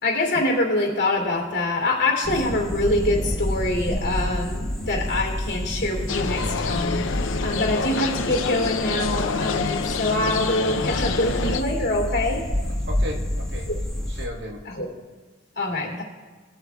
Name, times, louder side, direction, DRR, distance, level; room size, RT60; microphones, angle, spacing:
voice 1, 0.0-7.1 7.4-12.4 13.7-13.8 14.7-14.9 15.6-16.0, left 1 dB, 60° left, -1 dB, 2.7 m, -25 dB
sound 1, 2.2-14.3, left 1 dB, 5° left, 1.0 m, -29 dB
sound 2, 6.1-11.6, left 5 dB, 90° left, 0.6 m, -27 dB
voice 2, 12.9-13.7 14.1-14.7 15.7-16.0, equal, 60° right, 1 dB, 1.2 m, -36 dB
18.5 x 7.9 x 2.3 m, 1.3 s
head